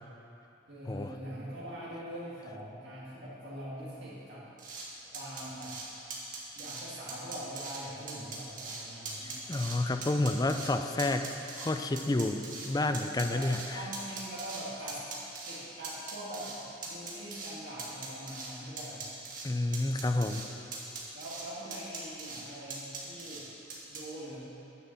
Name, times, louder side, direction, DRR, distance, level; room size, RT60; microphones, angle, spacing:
voice 1, 0.7-4.5 5.1-5.8 6.6-9.5 13.3-15.0 15.5-16.5 16.8-19.1 21.1-23.5 23.9-24.5, right 1 dB, 70° right, -9 dB, 1.8 m, -43 dB
sound 1, 4.6-4.8 5.1-5.8 6.1-6.8 7.1-7.8 8.1-8.8 9.1-9.8 10.0-10.7 11.0-12.7 12.9-14.6 14.9-15.6 15.8-16.6 16.8-17.5 17.8-18.5 18.8-19.5 19.7-20.5 20.7-21.4 21.7-22.4 22.7-23.4 23.7-24.0, right 4 dB, 50° right, 1.7 m, -41 dB
voice 2, 9.5-11.3 11.5-13.6 19.4-20.4, left 2 dB, 20° left, 7 dB, 0.4 m, -29 dB
9.8 x 6.5 x 7.0 m, 3.0 s
head